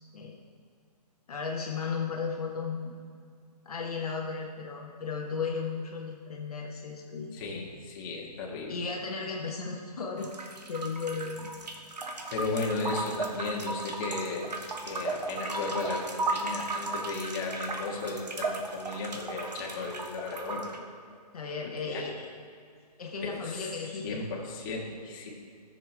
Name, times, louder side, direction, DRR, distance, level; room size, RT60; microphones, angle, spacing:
voice 1, 1.3-2.9 3.6-7.4 8.7-10.3 10.7-11.5 21.3-22.3 23.0-24.2, left 5 dB, 60° left, -1 dB, 1.2 m, -35 dB
voice 2, 7.3-8.8 12.3-20.7 21.6-22.1 23.2-23.7 24.0-25.3, left 3 dB, 30° left, -2 dB, 1.7 m, -35 dB
sound 1, 10.2-20.8, right 2 dB, 80° right, 1.3 m, -35 dB
14.5 x 6.8 x 3.4 m, 2.3 s
hypercardioid pair, 145°, 21 cm